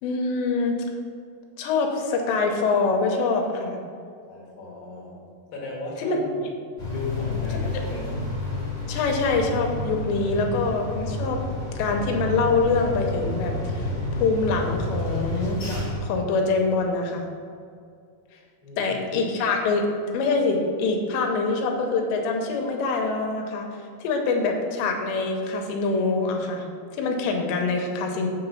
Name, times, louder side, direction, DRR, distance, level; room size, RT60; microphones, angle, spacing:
voice 1, 0.0-0.8 1.6-3.8 6.0-6.2 7.5-7.6 8.9-11.4 11.8-13.9 14.2-15.6 16.0-17.3 18.8-19.9 20.1-26.7 26.9-28.3, left 3 dB, 90° left, 2 dB, 3.0 m, -24 dB
voice 2, 4.2-5.2 5.5-6.3 6.9-8.1 18.6-19.0, left 2 dB, 35° left, -5 dB, 2.3 m, -36 dB
sound 1, 6.8-16.0, left 2 dB, 65° left, 0.7 m, -30 dB
7.9 x 5.9 x 5.5 m, 2.4 s
omnidirectional pair, 5.1 m